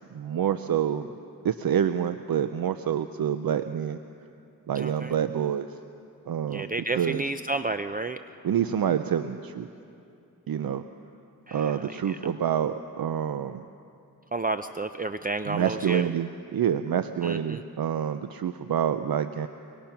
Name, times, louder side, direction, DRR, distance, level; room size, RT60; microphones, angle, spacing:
voice 1, 0.1-1.1 1.4-4.0 4.7-5.7 6.3-7.2 8.4-9.7 10.5-10.8 11.5-13.6 15.5-19.5, right 9 dB, 70° right, 10 dB, 0.7 m, -27 dB
voice 2, 4.8-5.1 6.5-8.2 11.5-11.6 14.3-16.0 17.2-17.6, right 2 dB, 25° right, 9 dB, 0.6 m, -31 dB
25.5 x 24.0 x 5.9 m, 2.6 s
cardioid pair, 70°, 37 cm